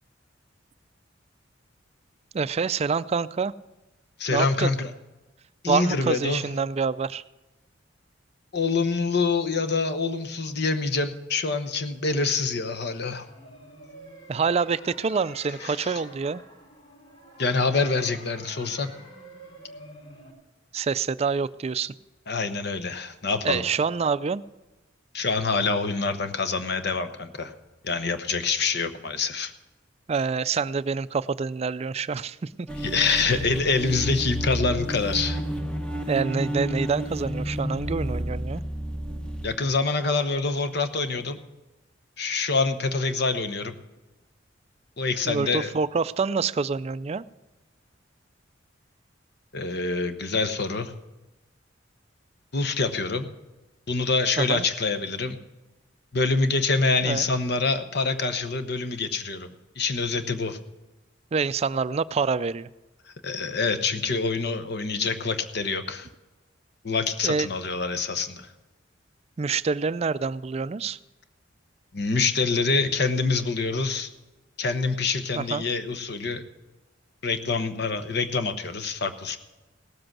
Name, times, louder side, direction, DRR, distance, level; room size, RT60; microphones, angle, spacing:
voice 1, 2.3-3.5 4.3-4.7 5.7-7.2 14.3-16.4 20.7-21.9 23.4-24.4 30.1-32.7 33.3-33.4 36.1-38.6 45.3-47.2 54.4-54.7 57.0-57.3 61.3-62.7 67.2-67.5 69.4-71.0 75.3-75.6, right 5 dB, 35° right, 16 dB, 0.3 m, -26 dB
voice 2, 4.2-4.9 5.6-6.4 8.5-13.2 15.6-16.0 17.4-18.9 22.3-23.6 25.1-27.5 27.8-29.5 32.8-35.4 39.4-41.4 42.2-43.7 45.0-45.7 49.5-50.9 52.5-53.3 53.9-55.4 56.1-59.5 59.8-60.6 63.2-66.1 66.8-68.5 71.9-74.1 74.6-76.4 77.2-79.4, left 4 dB, 55° left, 10 dB, 1.0 m, -26 dB
sound 1, 13.2-20.3, equal, 30° left, 2.7 m, -47 dB
sound 2, 32.7-39.5, right 1 dB, 5° left, 0.9 m, -31 dB
17.5 x 7.8 x 6.1 m, 1.1 s
head